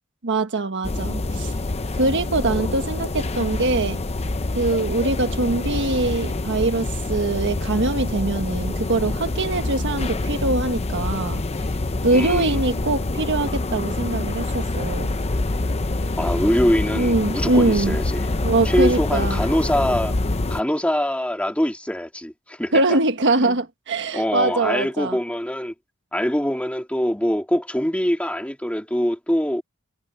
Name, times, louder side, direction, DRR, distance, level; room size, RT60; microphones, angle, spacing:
voice 1, 0.2-1.5 2.0-4.0 4.5-11.4 12.0-15.1 17.0-18.0 18.4-19.4 22.7-25.2, right 2 dB, 60° right, 1.4 m, -23 dB
sound 1, 0.8-20.6, left 2 dB, 30° left, 0.7 m, -26 dB
voice 2, 12.1-12.5 16.2-18.3 18.6-20.1 20.5-22.7 23.4-23.6 24.1-25.7 26.1-29.6, equal, 5° left, 2.2 m, -23 dB
head